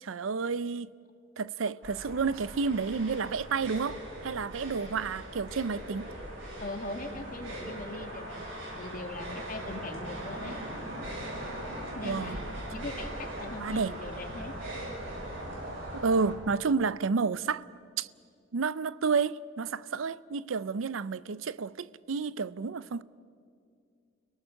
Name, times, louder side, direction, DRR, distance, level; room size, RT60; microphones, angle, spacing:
voice 1, 0.0-0.9 1.4-6.1 12.0-12.4 13.6-13.9 15.9-17.7 18.0-18.1 18.5-23.0, right 5 dB, 90° right, 0.5 m, -30 dB
sound 1, 1.8-16.3, right 1 dB, 70° right, 7.7 m, -40 dB
voice 2, 6.6-8.5 8.8-10.6 11.9-14.5, left 2 dB, 45° left, 2.2 m, -40 dB
30.0 x 18.5 x 6.4 m
head